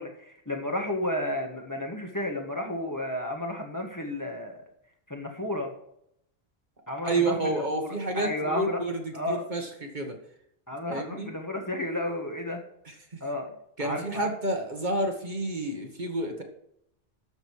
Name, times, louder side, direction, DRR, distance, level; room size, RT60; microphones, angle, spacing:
voice 1, 0.0-4.6 5.1-5.7 6.9-8.8 9.1-9.5 10.7-12.6 13.2-13.5 13.8-14.3, left 1 dB, 20° left, 2 dB, 1.7 m, -32 dB
voice 2, 7.0-10.2 10.9-11.3 12.9-13.2 13.8-16.4, right 2 dB, 45° right, 3 dB, 1.8 m, -30 dB
13.0 x 6.6 x 4.8 m, 0.73 s
omnidirectional pair, 1.1 m